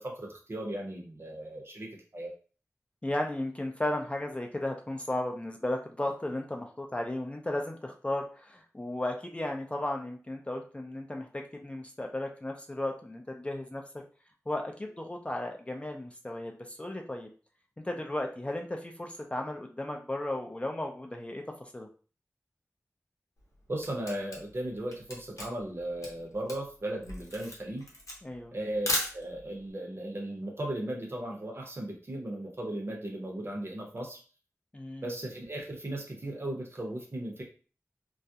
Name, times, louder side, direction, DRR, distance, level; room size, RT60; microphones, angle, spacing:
voice 1, 0.0-2.3 23.7-27.8 28.5-34.2 35.0-37.4, right 1 dB, 50° right, -1 dB, 0.7 m, -36 dB
voice 2, 3.0-13.8 14.5-17.3 17.8-21.9 28.2-28.5 34.7-35.1, left 1 dB, 20° left, 2 dB, 0.4 m, -35 dB
Camera, 23.4-29.6, left 2 dB, 80° left, 0.7 m, -36 dB
2.3 x 2.0 x 2.7 m, 0.38 s
wide cardioid pair, 70°, 5 cm